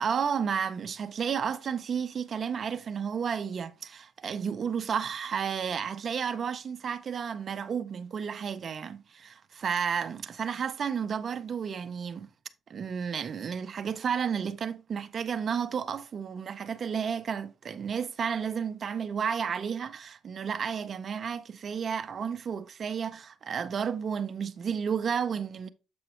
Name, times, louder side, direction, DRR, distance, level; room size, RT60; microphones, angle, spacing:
voice 1, 0.0-12.3 12.7-25.7, right 7 dB, 50° right, 0.6 m, -32 dB
7.7 x 5.2 x 3.0 m
cardioid pair, 90°, 0 cm